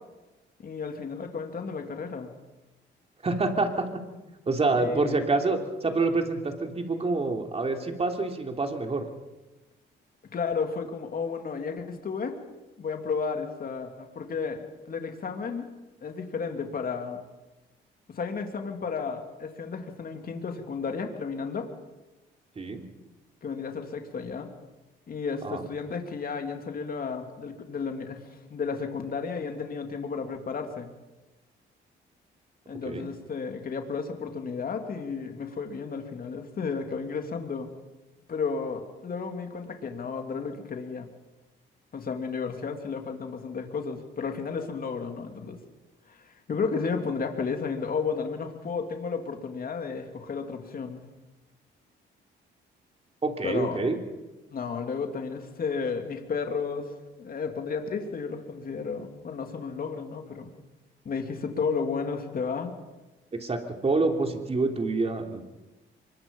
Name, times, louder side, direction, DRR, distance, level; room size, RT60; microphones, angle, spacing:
voice 1, 0.6-2.3 4.7-5.2 10.3-12.4 12.8-15.7 16.0-17.2 18.1-21.7 23.4-24.5 25.1-30.9 32.7-37.7 38.3-41.1 41.9-45.6 46.1-51.0 53.4-53.8 54.5-56.9 57.2-60.5 61.0-62.7, left 5 dB, 45° left, 4 dB, 2.9 m, -33 dB
voice 2, 3.2-3.9 4.5-9.1 22.5-22.8 25.4-25.7 32.8-33.1 53.2-54.0 63.4-65.4, right 3 dB, 30° right, 4 dB, 3.1 m, -27 dB
24.5 x 22.0 x 5.5 m, 1.1 s
cardioid pair, 90°, 20 cm